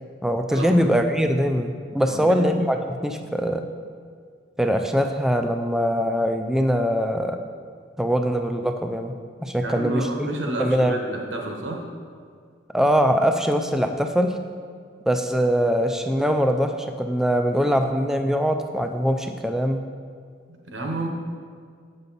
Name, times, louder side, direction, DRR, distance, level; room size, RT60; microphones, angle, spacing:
voice 1, 0.2-3.6 4.6-7.4 8.0-9.1 9.4-10.3 10.6-11.0 12.7-14.4 15.1-19.8, equal, 5° right, 5 dB, 0.3 m, -22 dB
voice 2, 2.1-2.4 9.6-11.8 20.5-21.1, right 2 dB, 85° right, 1 dB, 1.2 m, -30 dB
8.2 x 6.6 x 4.1 m, 2.1 s
head